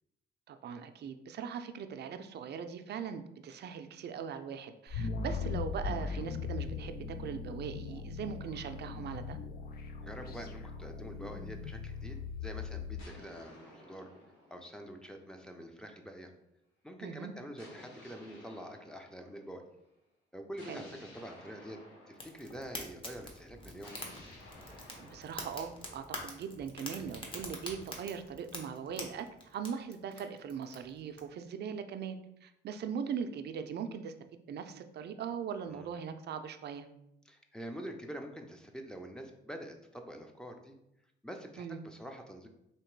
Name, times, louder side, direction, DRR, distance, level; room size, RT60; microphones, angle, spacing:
voice 1, 0.5-9.4 17.0-17.3 20.7-20.8 25.0-29.3 29.5-34.1 34.5-36.9 41.6-41.8, right 7 dB, 55° right, 8 dB, 0.5 m, -40 dB
sound 1, 4.9-13.0, left 5 dB, 50° left, 0.5 m, -39 dB
voice 2, 10.0-14.1 14.5-16.3 16.8-19.6 20.3-21.8 22.1-24.0 35.7-35.9 37.3-40.8 41.2-42.5, equal, 5° left, 4 dB, 0.6 m, -46 dB
sound 2, 11.1-12.2 13.0-15.6 17.6-19.7 20.6-22.9 23.8-27.6, left 1 dB, 85° left, 1.2 m, -56 dB
Fire, 22.2-31.2, left 1 dB, 25° left, 1.0 m, -46 dB
3.1 x 2.9 x 4.5 m, 0.82 s
cardioid pair, 90°, 20 cm